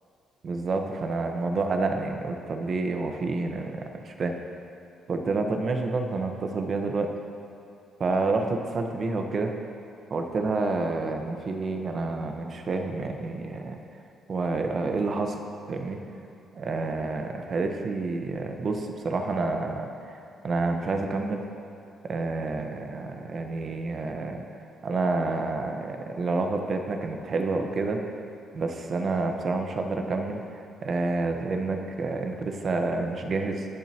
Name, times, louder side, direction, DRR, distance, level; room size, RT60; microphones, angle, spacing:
voice 1, 0.4-4.3 5.1-7.1 8.0-9.5 10.1-13.8 14.3-15.4 15.7-16.0 16.5-21.4 22.0-24.4 24.8-28.0 28.5-33.6, right 3 dB, 50° right, 4 dB, 1.2 m, -29 dB
21.0 x 7.4 x 3.0 m, 2.6 s
cardioid pair, 90°, 0 cm